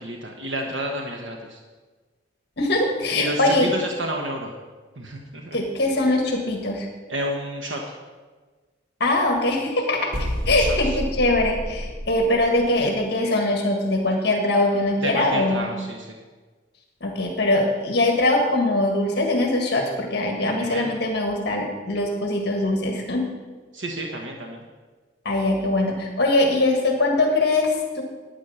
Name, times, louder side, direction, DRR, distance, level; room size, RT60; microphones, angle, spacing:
voice 1, 0.0-1.6 3.1-4.5 5.0-5.6 7.1-7.8 10.5-11.0 15.0-16.2 20.5-20.9 23.7-24.7, right 1 dB, 90° right, 1 dB, 1.2 m, -30 dB
voice 2, 2.6-3.7 5.5-6.9 9.0-10.1 10.4-15.7 17.0-23.3 25.2-28.0, left 2 dB, 60° left, 2 dB, 1.6 m, -22 dB
sound 1, 10.1-12.9, equal, 45° right, 1.3 m, -29 dB
11.5 x 9.4 x 5.6 m, 1.4 s
head